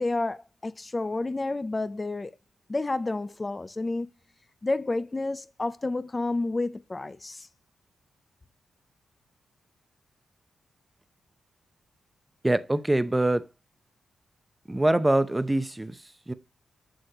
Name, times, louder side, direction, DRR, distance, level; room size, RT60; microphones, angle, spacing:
voice 1, 0.0-2.4 2.7-4.1 4.6-7.5, left 2 dB, 25° left, 0.4 m, -30 dB
voice 2, 12.4-13.5 14.7-16.3, right 1 dB, 15° right, 0.7 m, -24 dB
7.8 x 6.4 x 2.8 m
cardioid pair, 85°, 0 cm